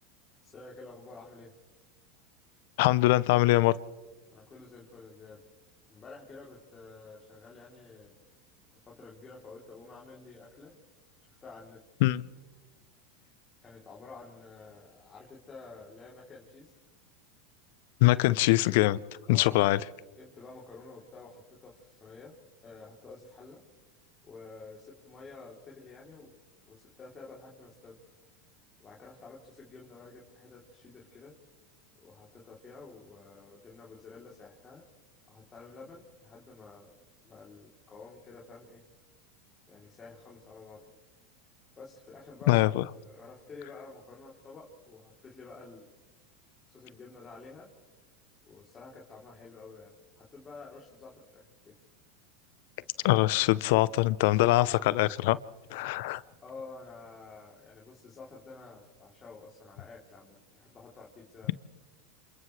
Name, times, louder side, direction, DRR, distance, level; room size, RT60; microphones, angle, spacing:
voice 1, 0.4-1.5 4.3-5.4 5.9-8.1 8.7-10.8 11.2-11.8 13.6-16.7 19.3-19.7 20.1-22.4 22.6-23.6 24.2-26.4 26.6-28.0 28.8-31.4 31.9-34.9 35.3-36.9 37.2-38.8 39.7-40.8 41.8-45.9 46.7-47.7 48.4-51.7 56.4-61.5, left 3 dB, 25° left, 3.3 m, -50 dB
voice 2, 2.8-3.7 12.0-12.2 18.0-19.0 19.3-19.8 42.5-42.8 53.0-55.4 55.7-56.2, left 18 dB, 70° left, 0.7 m, -23 dB
28.5 x 27.5 x 3.3 m
hypercardioid pair, 105°, 0 cm